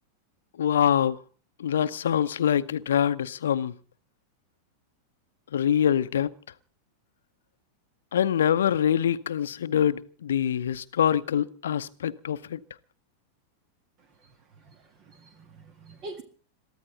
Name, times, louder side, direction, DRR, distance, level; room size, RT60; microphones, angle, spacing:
voice 1, 0.6-1.2 1.6-3.7 5.5-6.3 8.1-12.6, left 9 dB, 65° left, 0.8 m, -24 dB
voice 2, 14.6-16.2, right 2 dB, 35° right, 1.9 m, -45 dB
22.5 x 14.5 x 4.0 m
figure-of-eight pair, 90°, 0 cm